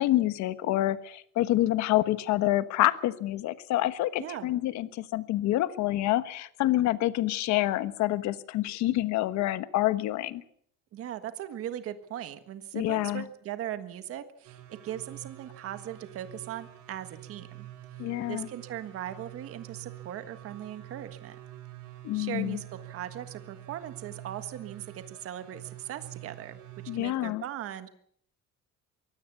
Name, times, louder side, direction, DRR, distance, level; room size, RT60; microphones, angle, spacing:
voice 1, 0.0-10.4 12.7-13.2 18.0-18.5 22.0-22.6 26.9-27.4, left 15 dB, 65° left, 13 dB, 1.3 m, -27 dB
voice 2, 4.2-4.5 10.9-17.7 18.3-21.4 22.1-26.6 27.0-27.9, right 11 dB, 50° right, 10 dB, 1.6 m, -39 dB
sound 1, 14.4-27.0, right 14 dB, 70° right, 3.7 m, -47 dB
23.5 x 17.0 x 6.9 m, 0.65 s
cardioid pair, 165°, 30 cm